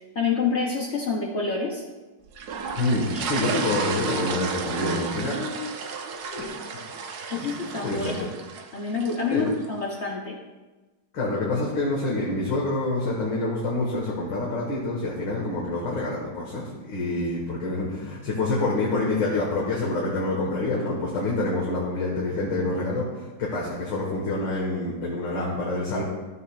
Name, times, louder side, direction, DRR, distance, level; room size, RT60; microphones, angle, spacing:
voice 1, 0.1-1.8 3.1-3.6 7.3-8.3 8.7-10.4, left 4 dB, 50° left, -1 dB, 0.8 m, -28 dB
sound 1, 2.4-9.7, right 5 dB, 65° right, 1.1 m, -33 dB
voice 2, 2.8-5.6 6.3-6.5 7.3-7.5 7.8-8.3 9.3-9.5 11.1-26.0, left 2 dB, 75° left, -4 dB, 2.1 m, -27 dB
13.0 x 7.3 x 2.4 m, 1.2 s
omnidirectional pair, 2.0 m